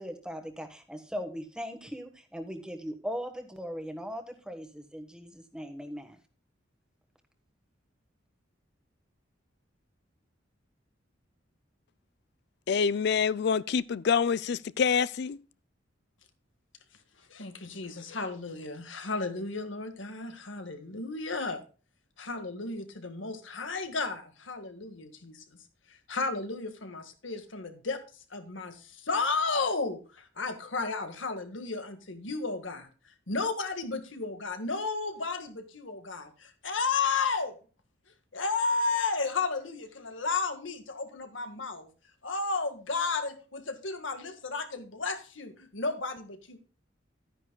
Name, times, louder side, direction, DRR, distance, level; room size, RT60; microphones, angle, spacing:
voice 1, 0.0-6.2, equal, 5° right, 1.4 m, -39 dB
voice 2, 12.7-15.4, left 6 dB, 60° left, 0.4 m, -26 dB
voice 3, 17.3-21.6 22.2-25.6 25.9-28.0 28.3-32.9 33.3-37.6 38.3-41.9 42.2-46.6, left 4 dB, 85° left, 1.7 m, -33 dB
12.5 x 9.9 x 2.3 m
head